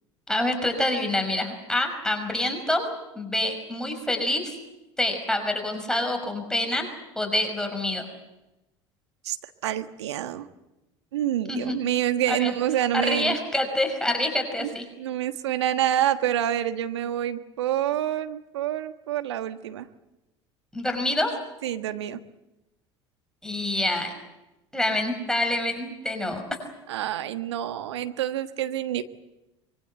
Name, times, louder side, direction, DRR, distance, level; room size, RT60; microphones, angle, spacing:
voice 1, 0.3-2.9 3.1-4.5 5.0-6.9 7.2-8.1 11.5-11.8 12.3-12.5 12.9-14.9 20.7-21.4 23.4-24.1 24.7-26.4, left 1 dB, 5° left, 4 dB, 5.7 m, -26 dB
voice 2, 9.6-10.5 11.1-13.4 14.6-14.7 15.0-19.9 21.6-22.2 26.9-29.0, right 11 dB, 75° right, 10 dB, 1.4 m, -27 dB
24.5 x 23.5 x 7.9 m, 0.97 s
hypercardioid pair, 75°, 14 cm